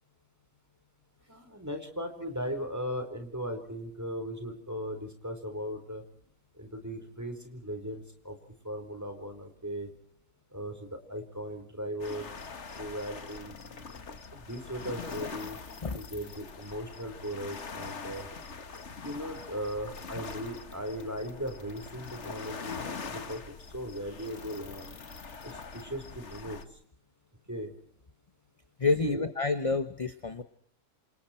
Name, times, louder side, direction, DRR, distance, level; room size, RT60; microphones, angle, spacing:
voice 1, 1.3-6.0 6.6-8.4 8.6-9.9 10.5-12.3 12.7-13.5 14.5-15.6 16.0-18.3 19.0-22.8 23.1-24.9 25.4-26.6 27.5-27.7 29.0-29.2, equal, 10° right, 6 dB, 4.4 m, -38 dB
sound 1, 12.0-26.6, left 4 dB, 45° left, 1.8 m, -43 dB
voice 2, 28.8-30.4, left 4 dB, 25° left, 11 dB, 0.9 m, -28 dB
28.0 x 27.0 x 4.5 m, 0.62 s
omnidirectional pair, 1.7 m